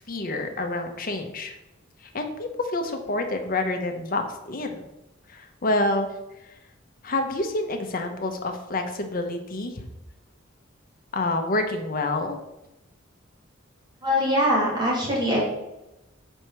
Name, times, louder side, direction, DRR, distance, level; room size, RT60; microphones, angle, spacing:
voice 1, 0.1-1.6 2.1-4.8 5.3-6.1 7.0-9.8 11.1-12.4, left 2 dB, 45° left, 5 dB, 0.9 m, -27 dB
voice 2, 14.0-15.4, equal, 20° right, -5 dB, 2.3 m, -22 dB
5.0 x 4.5 x 6.0 m, 0.92 s
head